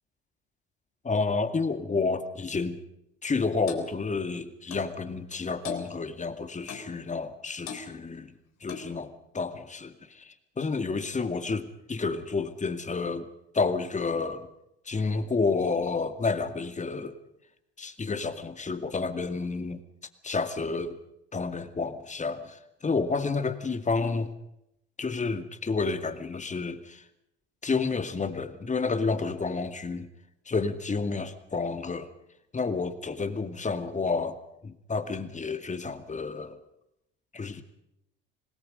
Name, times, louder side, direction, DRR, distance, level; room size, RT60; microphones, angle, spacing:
voice 1, 1.0-2.8 3.2-8.3 8.6-13.3 13.5-14.5 14.9-17.2 17.8-19.8 20.2-21.0 21.3-24.3 25.0-27.0 27.6-30.1 30.5-32.1 32.5-34.4 34.6-36.6 37.3-37.6, left 4 dB, 25° left, 10 dB, 2.3 m, -30 dB
Clock, 3.7-3.9 4.7-4.9 5.6-5.9 6.7-6.9 7.7-7.9 8.7-8.9, left 7 dB, 65° left, 3.8 m, -39 dB
26.5 x 19.5 x 5.3 m, 0.80 s
hypercardioid pair, 65°, 29 cm